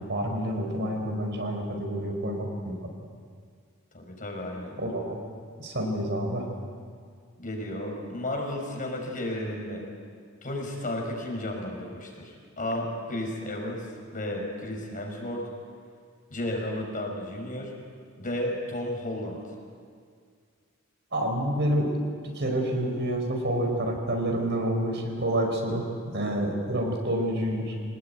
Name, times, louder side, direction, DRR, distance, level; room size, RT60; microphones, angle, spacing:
voice 1, 0.0-2.8 4.8-5.2 5.6-6.5 21.1-21.9 22.2-27.7, right 1 dB, 60° right, 2 dB, 4.7 m, -28 dB
voice 2, 3.9-4.7 7.4-9.8 10.4-15.5 16.3-17.7 18.2-19.4, left 1 dB, 40° left, 1 dB, 5.5 m, -33 dB
25.5 x 19.5 x 9.3 m, 2.1 s
head